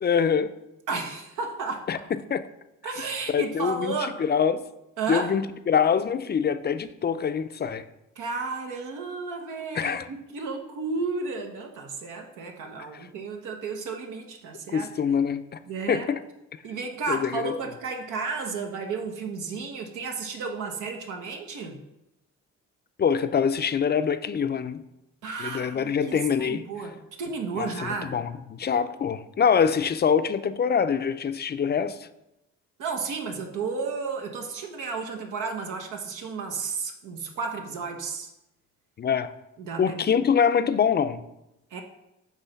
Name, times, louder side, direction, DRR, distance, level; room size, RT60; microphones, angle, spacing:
voice 1, 0.0-0.5 1.9-2.0 2.3-2.5 3.3-4.6 5.1-7.8 9.7-10.1 14.7-15.6 15.9-16.2 17.1-17.5 23.0-24.8 25.4-26.6 27.6-32.1 39.0-39.3 39.8-41.2, left 7 dB, 35° left, 11 dB, 0.5 m, -24 dB
voice 2, 0.9-2.0 2.8-4.2 5.0-5.3 8.2-14.9 15.7-16.1 16.6-21.8 25.2-28.2 32.8-38.3 39.6-40.2 41.7-41.8, right 4 dB, 80° right, 3 dB, 1.0 m, -33 dB
8.4 x 3.1 x 5.7 m, 0.89 s
cardioid pair, 90°, 30 cm